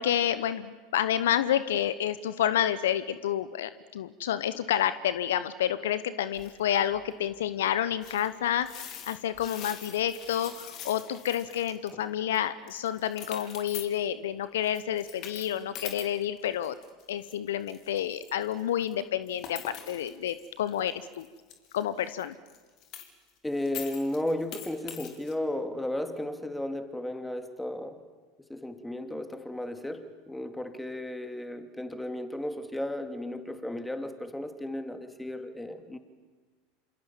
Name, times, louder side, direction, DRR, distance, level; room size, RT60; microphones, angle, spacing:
voice 1, 0.0-8.7 9.1-16.8 17.1-21.3 21.7-22.4, left 10 dB, 70° left, 15 dB, 0.9 m, -29 dB
sound 1, 6.3-7.0 7.3-7.4 8.0-12.0 12.3-12.4 12.7-14.0 14.6-17.3 17.7-23.3 23.6-25.3, left 9 dB, 50° left, 3.5 m, -44 dB
voice 2, 23.4-28.0 28.5-36.0, left 1 dB, 5° left, 7 dB, 2.7 m, -34 dB
27.5 x 26.5 x 7.3 m, 1.4 s
figure-of-eight pair, 80°, 0 cm